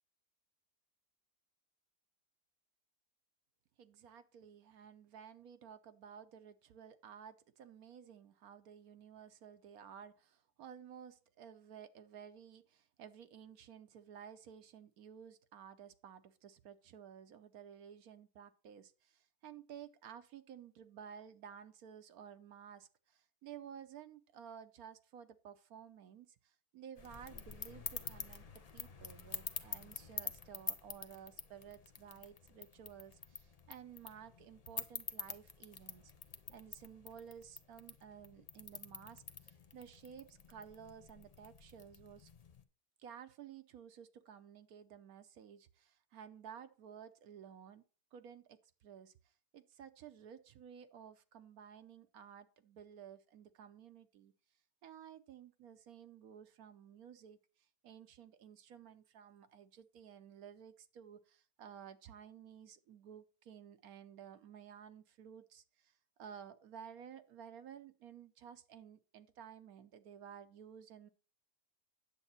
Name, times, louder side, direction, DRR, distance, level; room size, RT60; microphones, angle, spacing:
voice 1, 3.8-28.4 28.7-36.1 36.5-42.3 43.0-47.8 48.1-49.1 49.5-54.3 54.8-57.4 57.8-65.9 66.2-71.1, right 8 dB, 70° right, 1.2 m, -54 dB
sound 1, 27.0-42.6, left 5 dB, 50° left, 0.4 m, -48 dB
9.9 x 7.5 x 4.2 m
omnidirectional pair, 1.7 m